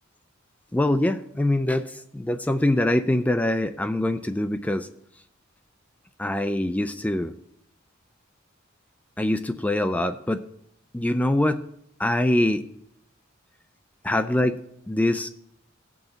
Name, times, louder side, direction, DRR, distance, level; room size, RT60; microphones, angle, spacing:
voice 1, 0.7-4.9 6.2-7.3 9.2-10.4 10.9-11.6 12.0-12.6 14.0-14.6 14.9-15.3, left 1 dB, 10° left, 9 dB, 0.4 m, -24 dB
17.0 x 6.3 x 3.9 m, 0.72 s
head